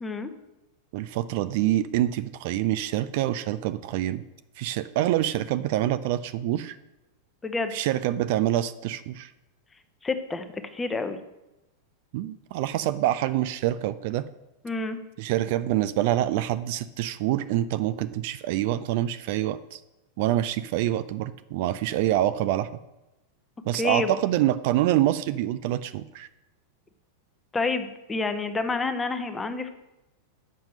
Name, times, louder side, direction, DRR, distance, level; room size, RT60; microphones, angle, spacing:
voice 1, 0.9-4.2 4.6-6.8 7.7-9.3 12.1-14.3 15.2-19.8 20.2-22.7 23.7-26.3, right 13 dB, 50° right, 13 dB, 0.3 m, -26 dB
voice 2, 10.0-10.5 10.7-11.2 14.6-15.0 23.8-24.1 27.5-29.7, left 3 dB, 15° left, 8 dB, 0.8 m, -28 dB
7.5 x 5.8 x 6.4 m, 0.97 s
figure-of-eight pair, 90°, 0 cm